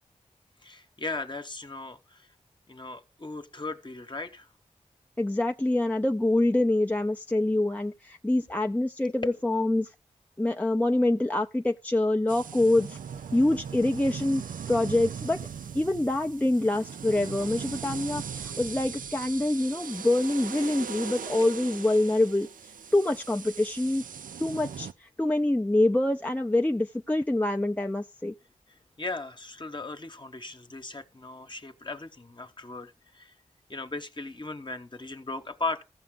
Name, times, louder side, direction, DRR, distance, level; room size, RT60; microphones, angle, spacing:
voice 1, 0.6-2.3 2.7-4.5 21.4-21.5 28.7-33.3 33.7-35.8, left 3 dB, 35° left, 1.0 m, -37 dB
voice 2, 5.2-9.9 10.4-13.0 13.3-14.4 14.7-15.4 15.7-24.0 24.4-28.3, left 1 dB, 10° left, 0.5 m, -25 dB
sound 1, 12.3-24.9, right 7 dB, 85° right, 0.4 m, -39 dB
15.0 x 5.8 x 3.7 m
cardioid pair, 40°, 14 cm